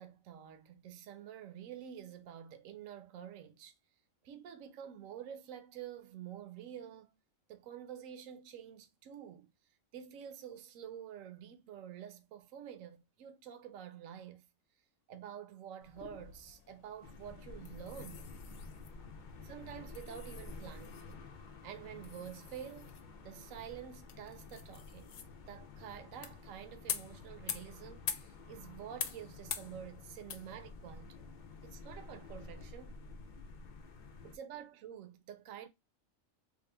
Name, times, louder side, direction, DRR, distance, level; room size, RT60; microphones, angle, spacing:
voice 1, 0.0-3.7 4.2-7.1 7.5-9.5 9.9-14.5 15.1-18.3 19.4-21.3 21.6-22.9 23.2-25.2 25.5-31.1 31.6-33.0 34.2-35.7, right 9 dB, 75° right, 1.1 m, -48 dB
sound 1, 15.8-32.7, left 8 dB, 65° left, 0.9 m, -47 dB
sound 2, 17.0-34.4, left 3 dB, 50° left, 0.6 m, -51 dB
3.6 x 2.5 x 3.3 m
omnidirectional pair, 1.4 m